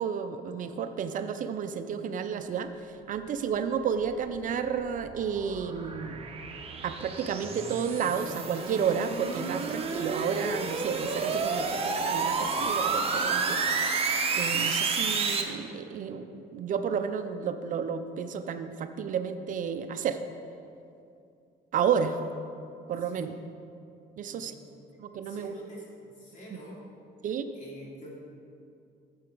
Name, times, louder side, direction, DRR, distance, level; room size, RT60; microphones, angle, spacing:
voice 1, 0.0-2.7 3.1-6.2 6.8-13.9 14.3-20.2 21.7-22.2 22.9-23.4 24.2-24.5 25.0-25.5 27.2-27.5, right 7 dB, 50° right, 9 dB, 0.5 m, -31 dB
sound 1, 4.1-15.4, right 4 dB, 35° right, 1.0 m, -30 dB
voice 2, 24.2-24.7 25.2-26.8 27.5-28.1, equal, 45° left, -4 dB, 2.7 m, -48 dB
11.0 x 7.3 x 4.6 m, 2.5 s
cardioid pair, 110°, 17 cm